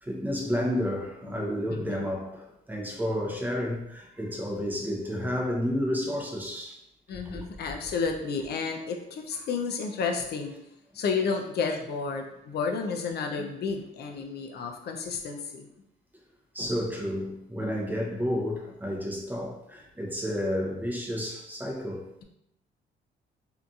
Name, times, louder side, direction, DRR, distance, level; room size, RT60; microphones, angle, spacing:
voice 1, 0.0-6.8 7.2-7.4 16.5-22.1, equal, 10° right, -1 dB, 0.6 m, -31 dB
voice 2, 1.7-2.0 7.1-10.6 10.9-15.6, left 5 dB, 55° left, 4 dB, 0.5 m, -31 dB
2.8 x 2.5 x 2.3 m, 0.83 s
cardioid pair, 90°, 20 cm